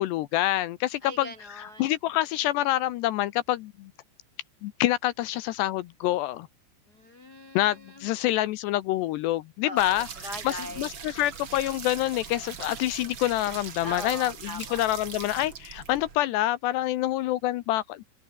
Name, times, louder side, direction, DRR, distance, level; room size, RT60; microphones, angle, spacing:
voice 1, 0.0-1.3 1.6-3.9 4.6-6.5 7.6-10.1 10.4-18.0, left 15 dB, 80° left, 2.7 m, -27 dB
voice 2, 1.0-1.9 6.9-8.1 9.6-10.9 13.8-14.9, left 1 dB, 55° left, 1.0 m, -40 dB
sound 1, 9.8-16.2, right 7 dB, 50° right, 1.5 m, -41 dB
omnidirectional pair, 5.5 m